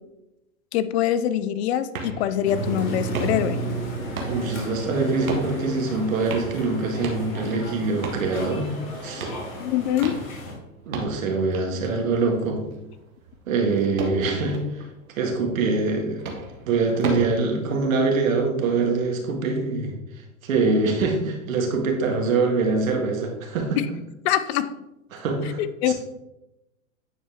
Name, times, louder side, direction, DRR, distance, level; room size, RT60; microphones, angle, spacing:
voice 1, 0.7-3.6 9.6-10.2 23.8-23.9 24.2-24.8 25.6-25.9, left 11 dB, 50° left, 13 dB, 0.5 m, -24 dB
sound 1, 1.9-17.3, right 2 dB, 90° right, 1.6 m, -37 dB
sound 2, 2.4-10.5, right 1 dB, 30° left, 2.1 m, -33 dB
voice 2, 4.3-8.8 9.0-9.3 10.9-12.6 13.5-14.6 15.2-16.2 16.6-19.9 20.4-23.8 25.1-25.6 25.9-26.0, right 3 dB, 70° right, 2 dB, 1.9 m, -24 dB
9.8 x 4.3 x 3.5 m, 0.94 s
hypercardioid pair, 125°, 41 cm